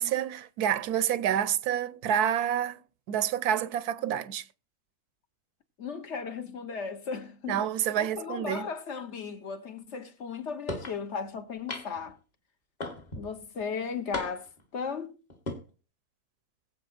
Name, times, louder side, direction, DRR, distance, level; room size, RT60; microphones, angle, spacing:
voice 1, 0.0-2.8 3.1-4.4 7.5-8.7, right 9 dB, 90° right, 1.3 m, -28 dB
voice 2, 5.8-7.6 8.0-12.2 13.2-14.5 14.7-15.2, left 5 dB, 50° left, 1.3 m, -36 dB
sound 1, 10.7-11.0 11.7-12.1 12.8-13.3 14.1-14.6 15.3-15.6, left 2 dB, 30° left, 1.3 m, -36 dB
20.5 x 7.7 x 2.5 m
omnidirectional pair, 1.6 m